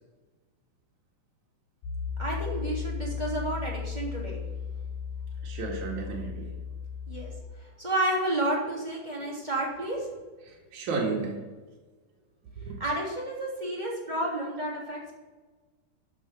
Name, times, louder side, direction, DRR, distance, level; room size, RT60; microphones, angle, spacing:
Piano, 1.8-7.4, left 6 dB, 85° left, 2.9 m, -35 dB
voice 1, 2.2-4.4 7.1-10.1 12.8-15.1, right 1 dB, 15° right, -4 dB, 3.1 m, -31 dB
voice 2, 5.4-6.5 9.2-9.3 10.4-11.4 12.5-12.8, right 4 dB, 65° right, -2 dB, 3.4 m, -33 dB
13.0 x 6.4 x 5.9 m, 1.3 s
omnidirectional pair, 3.7 m